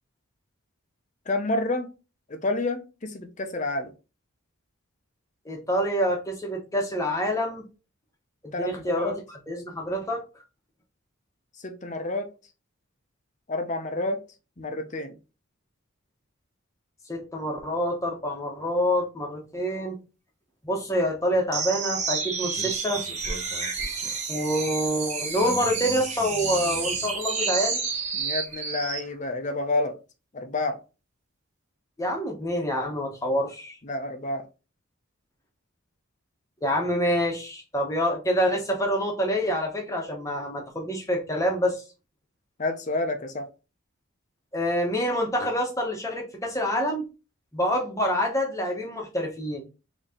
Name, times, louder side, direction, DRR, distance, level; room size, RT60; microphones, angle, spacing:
voice 1, 1.3-1.9 2.3-3.9 8.5-9.2 11.6-12.3 13.5-14.2 14.6-15.1 28.1-30.0 30.3-30.8 33.8-34.4 42.6-43.5, left 2 dB, 35° left, 0.7 m, -29 dB
voice 2, 5.4-7.6 8.4-9.1 9.5-10.2 17.1-20.0 20.6-23.0 24.3-27.8 32.0-33.8 36.6-41.8 44.5-47.0 47.5-49.6, equal, 15° left, 1.0 m, -27 dB
sound 1, 21.5-29.1, right 5 dB, 30° right, 0.9 m, -30 dB
4.1 x 3.0 x 3.7 m
head